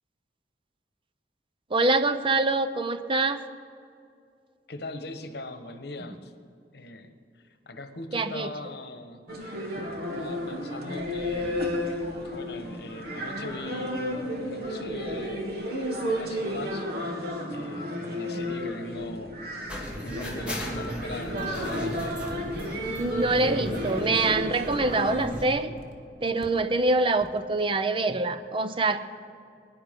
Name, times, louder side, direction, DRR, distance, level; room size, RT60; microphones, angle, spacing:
voice 1, 1.7-3.4 8.1-8.5 23.0-25.8 26.2-29.0, right 2 dB, 30° right, 11 dB, 0.6 m, -25 dB
voice 2, 4.7-6.3 6.7-9.2 10.1-11.9 12.2-15.7 16.0-16.9 17.5-19.3 20.0-22.2, left 2 dB, 65° left, 8 dB, 1.2 m, -40 dB
sound 1, 9.3-25.2, equal, 60° right, 1.9 m, -32 dB
sound 2, 19.7-25.5, equal, 10° right, 2.4 m, -36 dB
sound 3, 20.2-20.4 20.8-20.9 21.6-21.8 22.2-22.4 23.0-24.2 25.8-26.0 26.4-26.5 27.2-27.4, left 1 dB, 35° left, 1.6 m, -46 dB
22.0 x 10.5 x 5.2 m, 2.5 s
head